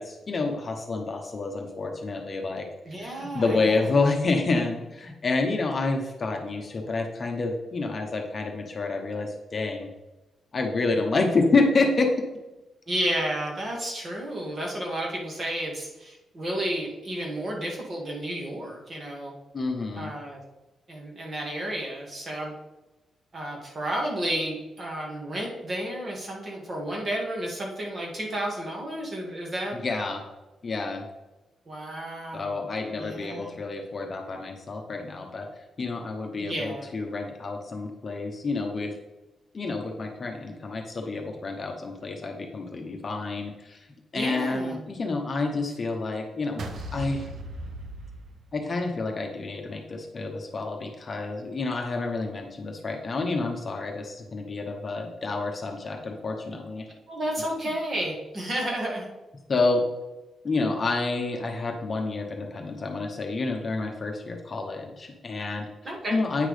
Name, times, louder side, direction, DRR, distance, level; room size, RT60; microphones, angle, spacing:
voice 1, 0.0-2.7 3.0-9.9 10.5-12.1 19.5-20.1 29.7-30.2 30.6-31.1 32.3-35.5 35.8-38.9 39.5-43.9 44.1-46.6 46.9-47.2 48.5-56.9 59.5-59.8 60.4-65.7 66.1-66.5, left 3 dB, 35° left, 2 dB, 0.9 m, -28 dB
voice 2, 2.9-3.8 12.9-19.3 19.9-20.4 20.9-22.5 23.3-29.8 31.7-32.7 33.0-33.6 36.4-36.9 44.1-44.9 57.1-59.1 65.8-66.2, right 1 dB, 35° right, -1 dB, 1.9 m, -32 dB
sound 1, 46.6-48.9, right 1 dB, 60° right, 0.9 m, -37 dB
9.0 x 6.0 x 3.3 m, 1.0 s
wide cardioid pair, 140°, 0 cm